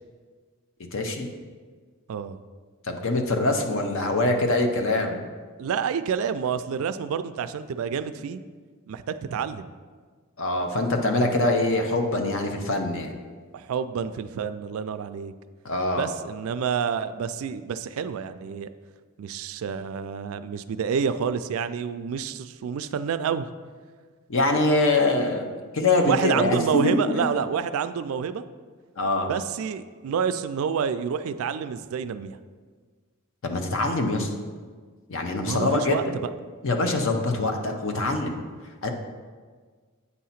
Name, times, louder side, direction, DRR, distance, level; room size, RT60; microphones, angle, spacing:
voice 1, 0.9-1.3 2.9-5.2 10.4-13.2 15.6-16.1 24.3-27.3 29.0-29.3 33.4-34.3 35.1-36.0 36.6-38.4 38.8-38.9, left 2 dB, 60° left, 4 dB, 0.7 m, -24 dB
voice 2, 5.6-8.4 8.9-9.7 13.5-15.3 16.0-18.7 19.2-23.5 26.0-28.4 29.3-32.4 35.4-36.0, right 7 dB, 70° right, 12 dB, 0.3 m, -28 dB
8.3 x 2.8 x 5.7 m, 1.5 s
head